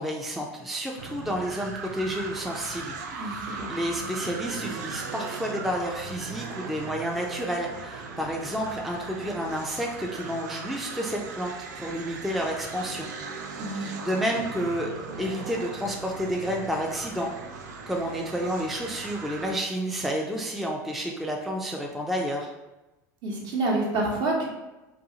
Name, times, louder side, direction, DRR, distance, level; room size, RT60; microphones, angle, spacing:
voice 1, 0.0-13.1 13.7-17.3 17.9-22.5, equal, ahead, 0 dB, 0.3 m, -30 dB
sound 1, 1.0-19.6, right 4 dB, 80° right, 0.4 m, -38 dB
voice 2, 3.2-3.7 13.6-13.9 23.2-24.5, right 2 dB, 50° right, -1 dB, 0.8 m, -28 dB
2.6 x 2.4 x 2.7 m, 1.1 s
hypercardioid pair, 90°, 9 cm